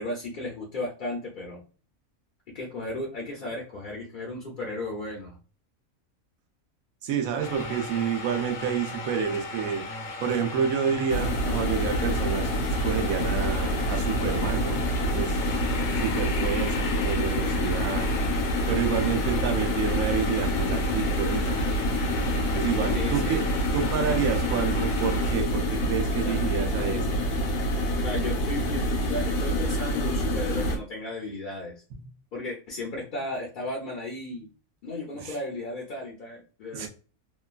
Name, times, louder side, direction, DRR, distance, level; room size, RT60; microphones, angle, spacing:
voice 1, 0.0-1.6 2.5-5.4 22.9-23.4 26.2-26.4 28.0-28.8 29.1-31.7 32.3-34.5 34.8-36.9, left 2 dB, 50° left, -2 dB, 0.6 m, -35 dB
voice 2, 7.0-9.8 10.2-12.5 12.8-14.8 15.1-15.4 16.0-18.1 18.7-21.6 22.5-23.4 23.7-27.2 31.9-32.1 35.1-35.4 36.7-36.9, right 7 dB, 80° right, 5 dB, 1.0 m, -29 dB
sound 1, 7.4-25.3, left 2 dB, 70° left, 0.9 m, -36 dB
sound 2, 11.1-30.8, equal, 85° left, 1.1 m, -27 dB
3.0 x 2.3 x 2.3 m, 0.36 s
omnidirectional pair, 1.5 m